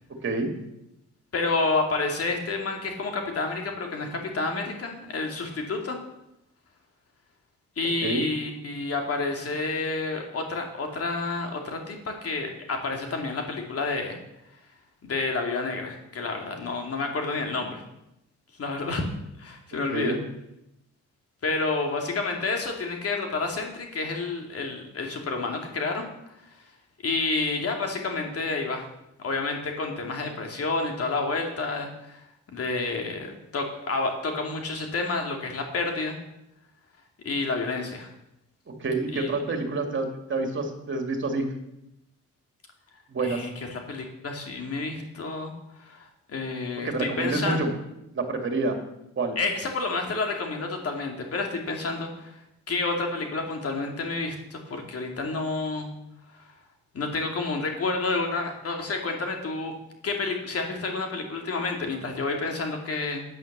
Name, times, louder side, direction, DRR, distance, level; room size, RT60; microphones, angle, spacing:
voice 1, 1.3-6.0 7.8-14.2 15.0-17.8 18.6-19.0 19.4-20.1 21.4-26.0 27.0-28.8 29.2-32.2 32.5-36.2 37.2-38.1 39.1-39.3 43.2-45.5 45.8-47.6 49.4-52.4 52.7-55.9 56.3-56.4 56.9-59.7 60.0-63.2, left 3 dB, 50° left, 3 dB, 2.6 m, -29 dB
voice 2, 38.8-41.4 43.1-43.5 46.8-47.7 48.1-48.7 49.2-49.4, right 3 dB, 40° right, 4 dB, 2.6 m, -27 dB
9.4 x 9.1 x 6.9 m, 0.85 s
cardioid pair, 90°, 30 cm